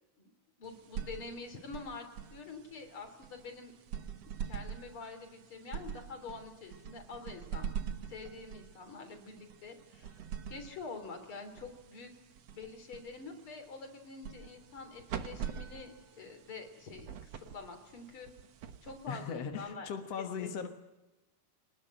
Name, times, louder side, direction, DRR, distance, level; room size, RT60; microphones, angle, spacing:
voice 1, 0.6-3.7 4.2-7.7 8.1-12.1 12.5-18.3 18.8-19.9 20.4-20.7, left 4 dB, 35° left, 5 dB, 3.7 m, -46 dB
sound 1, 0.6-19.5, right 8 dB, 65° right, 1.6 m, -45 dB
voice 2, 19.1-20.7, left 6 dB, 65° left, 5 dB, 1.6 m, -38 dB
25.0 x 19.5 x 9.1 m, 1.1 s
omnidirectional pair, 4.8 m